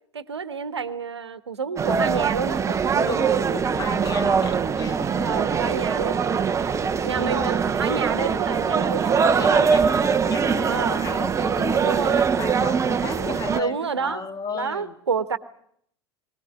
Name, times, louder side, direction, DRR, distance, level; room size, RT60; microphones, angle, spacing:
voice 1, 0.1-3.3 5.2-6.2 7.0-9.7 10.6-11.0 11.7-12.3 13.0-14.2 14.5-15.4, right 5 dB, 80° right, 14 dB, 1.1 m, -29 dB
sound 1, 1.8-13.6, right 6 dB, 20° right, 0.9 m, -22 dB
voice 2, 3.0-5.7 9.4-14.9, left 5 dB, 25° left, 8 dB, 2.0 m, -34 dB
23.5 x 18.5 x 9.0 m, 0.67 s
figure-of-eight pair, 80°, 14 cm